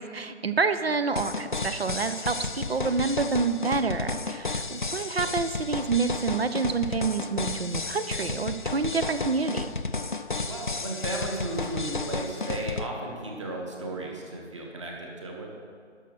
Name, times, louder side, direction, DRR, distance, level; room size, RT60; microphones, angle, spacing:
voice 1, 0.0-9.7, right 4 dB, 55° right, 11 dB, 0.7 m, -28 dB
sound 1, 1.2-12.9, left 3 dB, 45° left, 0.4 m, -32 dB
voice 2, 10.5-15.5, right 1 dB, 25° right, 0 dB, 1.4 m, -34 dB
11.5 x 6.3 x 6.1 m, 2.3 s
figure-of-eight pair, 155°, 36 cm